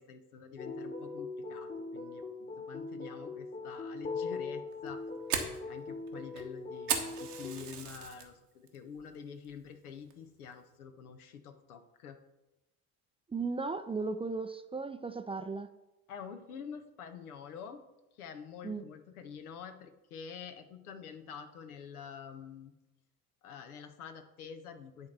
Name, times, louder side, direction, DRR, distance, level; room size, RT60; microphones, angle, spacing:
voice 1, 0.0-5.0 5.7-12.2 16.1-17.8 18.2-22.7 23.4-25.1, left 7 dB, 75° left, 7 dB, 1.1 m, -47 dB
sound 1, 0.6-7.5, left 4 dB, 25° left, 1.5 m, -41 dB
Fire, 4.7-8.3 8.7-9.1 9.4-9.6 10.1-10.4, right 8 dB, 75° right, 1.3 m, -36 dB
voice 2, 13.3-15.7 18.6-18.8, right 4 dB, 15° right, 9 dB, 0.5 m, -36 dB
9.6 x 4.5 x 6.7 m, 0.96 s
figure-of-eight pair, 55°, 44 cm